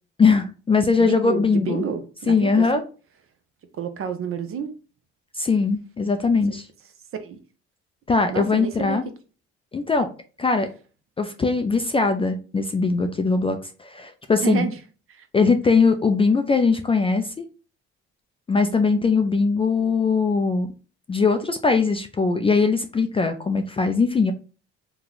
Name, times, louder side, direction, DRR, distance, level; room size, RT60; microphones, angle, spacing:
voice 1, 0.2-1.9 2.3-2.8 5.3-6.7 8.1-9.1 9.7-10.1 10.4-10.7 11.2-14.7 15.3-17.5 18.5-20.7 21.1-24.3, left 4 dB, 20° left, 7 dB, 0.4 m, -21 dB
voice 2, 1.0-2.8 3.8-4.7 7.2-7.4 8.3-9.0 14.4-14.7 15.1-15.3, right 6 dB, 45° right, 8 dB, 0.7 m, -29 dB
2.9 x 2.3 x 3.9 m, 0.36 s
supercardioid pair, 75°, 31 cm